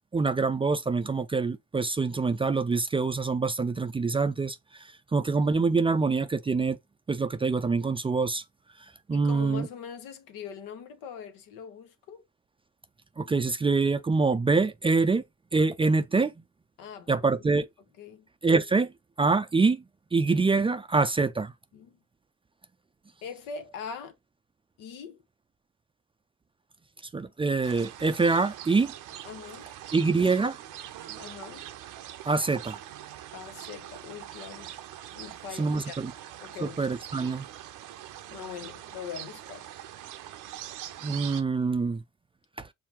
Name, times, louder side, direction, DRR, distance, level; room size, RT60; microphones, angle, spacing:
voice 1, 0.1-6.8 7.1-8.4 9.1-9.7 13.2-15.2 15.5-16.3 17.1-17.7 18.4-18.9 19.2-19.8 20.1-21.5 27.1-28.9 29.9-30.6 32.3-32.8 35.6-36.1 36.6-37.5 41.0-42.0 42.6-42.7, right 4 dB, 15° right, 0.3 m, -25 dB
voice 2, 9.1-12.2 16.8-17.5 18.0-18.3 21.7-22.0 23.2-24.2 24.8-25.2 29.2-29.7 31.2-31.6 33.3-34.7 35.1-36.0 36.4-36.8 38.3-39.7, left 7 dB, 85° left, 0.8 m, -42 dB
sound 1, 27.6-41.4, right 12 dB, 75° right, 0.6 m, -43 dB
5.6 x 2.1 x 2.9 m
supercardioid pair, 60°, 32 cm